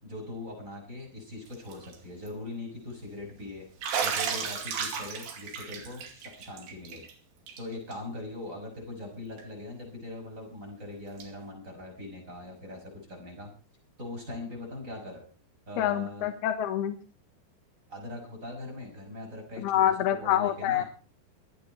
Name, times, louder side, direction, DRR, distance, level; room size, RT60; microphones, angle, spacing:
voice 1, 0.0-3.6 4.0-7.0 7.6-13.5 14.0-15.2 15.7-16.3 17.9-19.9 20.2-20.8, left 2 dB, 15° right, 0 dB, 6.2 m, -41 dB
Bathtub (filling or washing), 1.5-1.9 2.3-2.4 3.8-7.1 7.5-7.6 7.9-8.0 9.4-9.5 11.2-11.3, right 6 dB, 75° right, 4.6 m, -33 dB
voice 2, 15.8-17.0 19.6-20.8, left 11 dB, 70° left, 6 dB, 3.2 m, -26 dB
24.5 x 8.7 x 4.4 m, 0.36 s
omnidirectional pair, 5.0 m